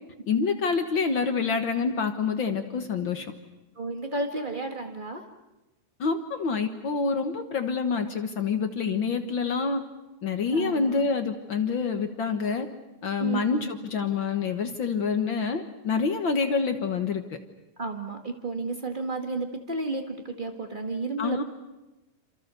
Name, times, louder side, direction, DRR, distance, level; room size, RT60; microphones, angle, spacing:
voice 1, 0.3-3.3 6.0-9.8 10.2-12.7 13.0-17.2 21.2-21.4, left 5 dB, 65° left, 7 dB, 1.2 m, -27 dB
voice 2, 3.7-5.2 10.5-11.0 13.2-13.7 17.8-21.4, right 3 dB, 70° right, 4 dB, 0.4 m, -32 dB
27.5 x 27.5 x 6.9 m, 1.0 s
omnidirectional pair, 4.2 m